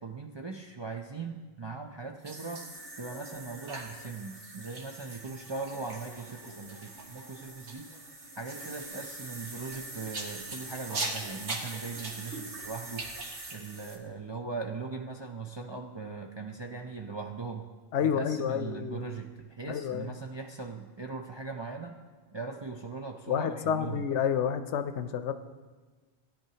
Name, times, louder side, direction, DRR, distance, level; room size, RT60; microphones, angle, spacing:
voice 1, 0.0-2.6 3.0-7.9 8.4-13.1 13.5-17.7 18.0-21.9 22.3-24.1, right 4 dB, 40° right, 1 dB, 0.4 m, -40 dB
sound 1, 2.2-14.0, right 2 dB, 85° right, 1.6 m, -41 dB
voice 2, 17.9-19.2 19.7-20.1 23.3-25.3, left 8 dB, 85° left, 10 dB, 0.9 m, -30 dB
16.5 x 10.0 x 2.8 m, 1.4 s
omnidirectional pair, 1.1 m